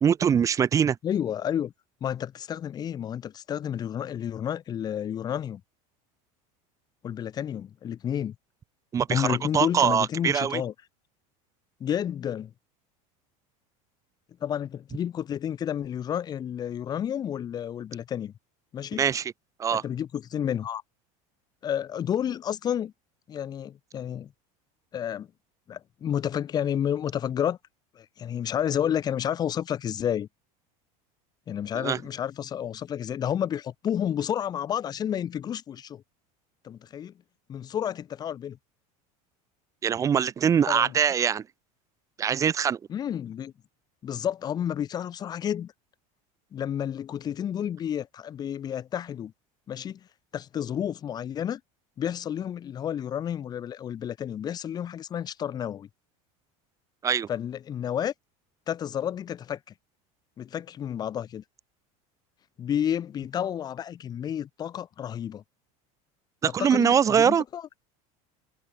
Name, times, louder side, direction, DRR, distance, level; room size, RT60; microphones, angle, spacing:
voice 1, 0.0-1.0 8.9-10.6 19.0-19.3 19.6-19.8 31.7-32.0 39.8-41.5 42.2-42.8 57.0-57.3 66.4-67.4, right 7 dB, 15° right, 0.7 m, -23 dB
voice 2, 1.0-1.7 2.0-5.6 7.0-8.3 9.1-10.7 11.8-12.5 14.4-18.3 18.7-19.0 19.8-20.8 21.6-22.9 23.3-24.3 24.9-25.3 25.7-27.6 28.0-30.3 31.5-36.0 36.6-37.1 37.5-38.6 40.7-40.9 42.9-43.5 44.0-45.7 46.5-49.3 49.7-50.0 50.3-51.6 52.0-55.9 57.3-58.1 58.7-59.6 60.4-61.4 62.6-65.4 66.6-67.6, left 9 dB, 20° left, 0.9 m, -30 dB
supercardioid pair, 165°, 18 cm